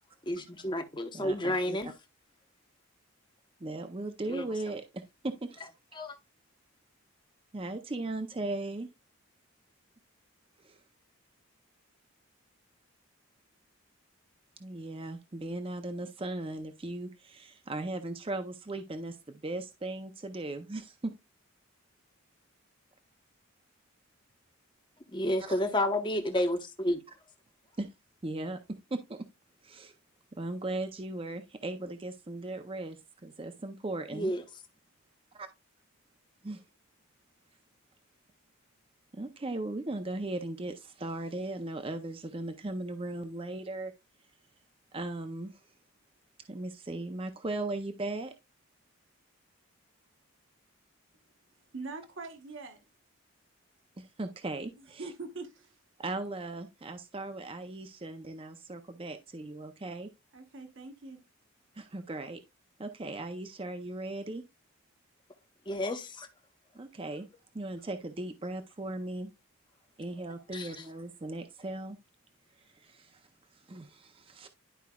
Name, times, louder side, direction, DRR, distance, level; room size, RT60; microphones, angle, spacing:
voice 1, 0.3-1.9 4.3-4.5 5.9-6.2 25.1-27.0 34.1-34.4 65.7-66.3 70.5-70.8, left 1 dB, 20° left, 0.9 m, -31 dB
voice 2, 1.1-1.8 3.6-5.7 7.5-8.9 10.6-10.8 14.6-21.1 27.8-27.9 28.2-29.3 29.6-29.9 30.4-34.3 35.3-35.5 36.4-36.6 39.1-43.9 44.9-45.6 46.5-48.3 54.0-55.1 56.0-60.1 61.7-62.4 62.8-64.4 66.7-67.3 67.5-69.3 70.0-72.0 72.8-73.2 73.7-74.5, right 2 dB, 25° right, 0.5 m, -37 dB
voice 3, 51.7-52.8 54.8-55.8 60.3-61.2, right 3 dB, 60° right, 1.1 m, -43 dB
11.5 x 4.7 x 2.3 m
head